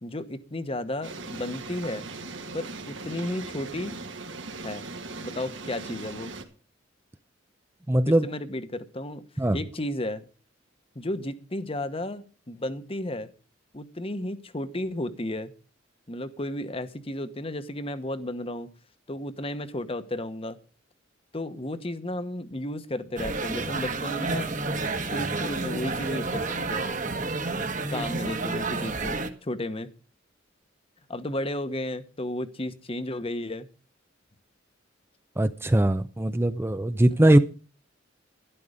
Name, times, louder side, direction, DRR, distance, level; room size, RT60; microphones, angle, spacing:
voice 1, 0.0-2.0 2.5-4.0 4.6-4.9 5.2-6.3 8.1-10.2 10.9-13.3 13.7-15.5 16.1-18.7 19.1-20.6 21.3-24.6 25.1-26.8 27.9-29.9 31.1-33.7, left 1 dB, 30° left, 1.1 m, -33 dB
sound 1, 1.0-6.4, right 3 dB, 80° right, 2.1 m, -39 dB
voice 2, 7.9-8.3 9.4-9.6 35.4-37.4, right 1 dB, 15° right, 0.5 m, -21 dB
sound 2, 23.2-29.3, right 3 dB, 40° right, 1.4 m, -30 dB
12.5 x 11.0 x 5.1 m
head